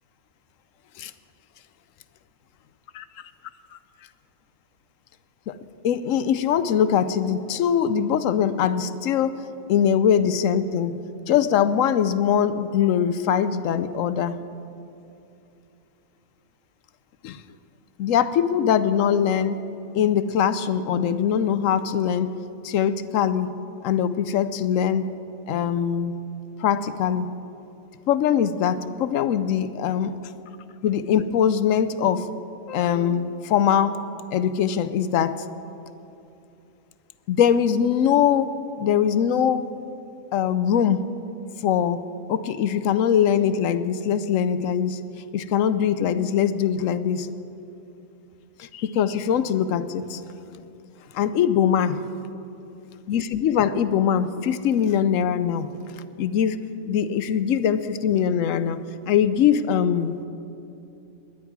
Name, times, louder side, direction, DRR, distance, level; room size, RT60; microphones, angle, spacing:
voice 1, 5.8-9.4 9.7-11.0 11.3-14.4 17.2-17.4 18.0-19.6 19.9-22.3 22.6-23.6 23.8-25.1 25.5-26.2 26.6-27.3 28.1-30.2 30.8-32.3 32.7-34.0 34.3-35.4 37.3-38.5 38.8-39.7 40.3-41.1 41.6-42.0 42.3-45.0 45.3-47.3 48.6-50.2 51.1-52.0 53.1-55.7 56.2-56.6 56.8-58.8 59.1-60.1, left 8 dB, 75° left, 13 dB, 0.9 m, -22 dB
21.0 x 10.0 x 4.7 m, 2.8 s
omnidirectional pair, 1.4 m